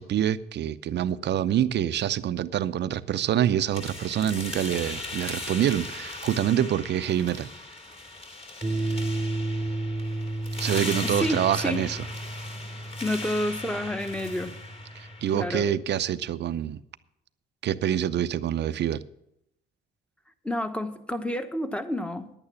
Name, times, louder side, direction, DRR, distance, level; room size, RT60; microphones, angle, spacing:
voice 1, 0.0-7.5 10.6-12.0 15.0-16.8 17.6-19.0, right 10 dB, 60° right, 0.6 m, -26 dB
sound 1, 3.7-15.7, left 2 dB, 30° left, 2.8 m, -38 dB
sound 2, 8.6-15.7, right 2 dB, 20° right, 0.7 m, -33 dB
voice 2, 11.0-11.8 13.0-14.6 15.3-15.7 20.4-22.3, left 1 dB, 5° left, 1.1 m, -29 dB
10.5 x 8.9 x 7.0 m
cardioid pair, 90°, 20 cm